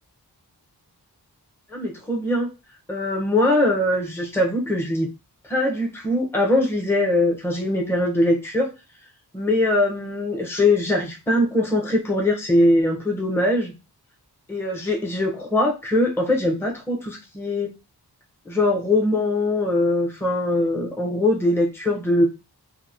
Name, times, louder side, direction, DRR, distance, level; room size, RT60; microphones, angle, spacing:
voice 1, 1.7-2.5 2.9-5.1 5.4-8.7 9.3-13.7 14.5-17.7 18.5-22.2, left 1 dB, 5° left, 1 dB, 0.6 m, -22 dB
2.8 x 2.6 x 2.5 m, 0.29 s
wide cardioid pair, 65°, 41 cm